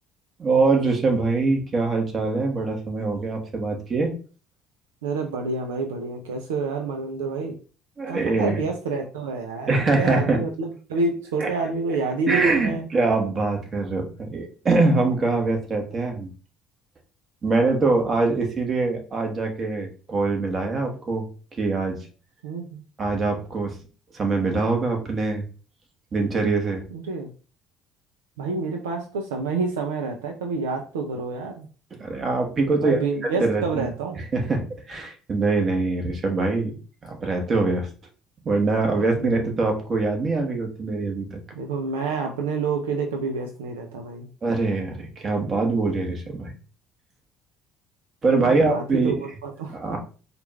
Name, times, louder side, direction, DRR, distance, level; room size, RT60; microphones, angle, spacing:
voice 1, 0.4-4.2 8.0-8.6 9.7-10.4 11.4-11.5 12.3-16.3 17.4-21.3 21.6-22.1 23.0-23.8 24.1-25.4 26.1-26.8 32.0-33.0 33.4-33.9 34.3-36.8 37.0-37.9 38.4-41.4 44.4-46.5 48.2-49.2 49.7-50.0, right 3 dB, 40° right, 2 dB, 1.4 m, -23 dB
voice 2, 5.0-7.6 8.1-12.9 22.4-22.8 26.9-27.3 28.4-31.7 32.8-34.3 39.2-39.5 41.5-44.3 48.3-49.8, right 4 dB, 85° right, 3 dB, 0.5 m, -28 dB
4.5 x 2.5 x 3.1 m, 0.37 s
hypercardioid pair, 60°, 0 cm